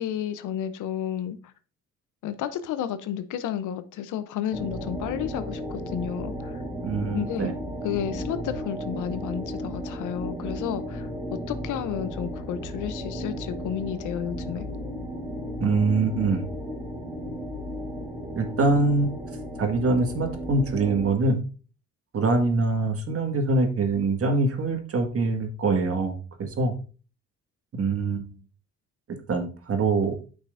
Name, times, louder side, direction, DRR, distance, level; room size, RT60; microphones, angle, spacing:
voice 1, 0.0-1.4 2.2-6.3 7.1-7.5 7.8-14.7, left 9 dB, 85° left, 12 dB, 0.8 m, -31 dB
sound 1, 4.5-21.1, equal, 10° right, 3.0 m, -34 dB
voice 2, 6.8-7.5 15.6-16.5 18.4-19.1 19.6-21.4 22.1-26.7 27.8-28.3 29.1-30.2, right 3 dB, 50° right, 4 dB, 1.8 m, -24 dB
8.9 x 6.0 x 2.6 m, 0.36 s
cardioid pair, 90°, 30 cm